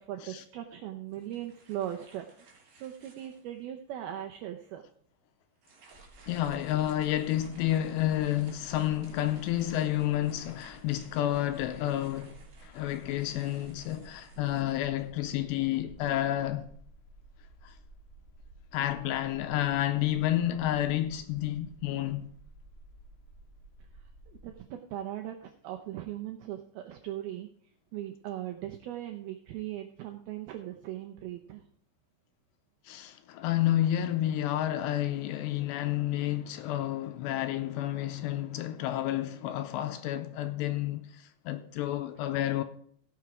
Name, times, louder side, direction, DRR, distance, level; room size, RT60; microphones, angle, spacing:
voice 1, 0.0-2.2 2.8-4.8 24.3-27.5 27.9-31.6, right 12 dB, 85° right, 2.2 m, -39 dB
sound 1, 1.1-3.6 4.2-4.3 5.6-15.4, right 4 dB, 50° right, 3.9 m, -59 dB
sound 2, 5.9-24.6, right 2 dB, 5° right, 1.7 m, -54 dB
voice 2, 6.3-16.7 17.6-17.8 18.7-22.3 32.9-42.6, left 13 dB, 80° left, 2.6 m, -30 dB
16.5 x 6.3 x 4.8 m
omnidirectional pair, 5.3 m